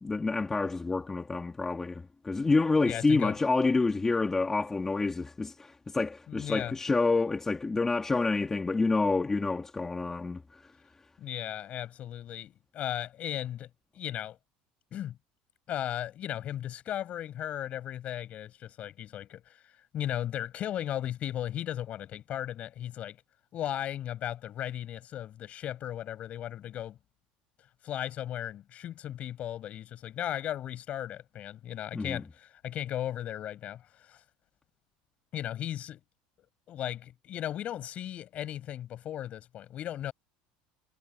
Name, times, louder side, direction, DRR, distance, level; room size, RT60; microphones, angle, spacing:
voice 1, 0.0-10.7 31.9-32.2, left 3 dB, 15° left, 1.8 m, -28 dB
voice 2, 2.9-3.4 6.3-6.7 11.2-13.7 13.9-14.4 14.9-15.2 15.7-23.2 23.5-27.0 27.8-34.2 35.3-36.0 36.7-40.1, left 11 dB, 40° left, 7.6 m, -36 dB
supercardioid pair, 130°, 3 cm